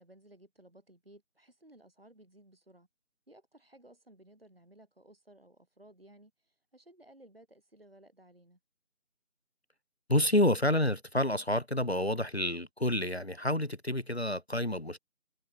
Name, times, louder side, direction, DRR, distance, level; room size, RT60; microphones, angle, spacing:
voice 1, 0.0-2.9 3.3-8.6, right 1 dB, 45° right, 4.9 m, -58 dB
voice 2, 10.1-15.0, left 1 dB, 50° left, 0.8 m, -29 dB
figure-of-eight pair, 175°, 41 cm